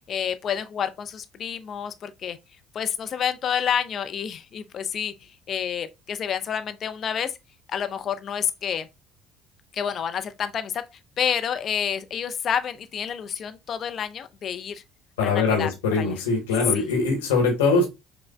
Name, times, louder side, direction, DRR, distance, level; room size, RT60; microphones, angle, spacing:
voice 1, 0.1-2.4 2.7-7.4 7.7-8.9 9.7-10.9 11.2-14.8 15.2-15.7 16.0-16.2 16.7-16.9, left 8 dB, 45° left, 0.4 m, -29 dB
voice 2, 15.2-17.9, left 4 dB, 70° left, 1.0 m, -22 dB
5.4 x 2.1 x 2.2 m
figure-of-eight pair, 55°, 0 cm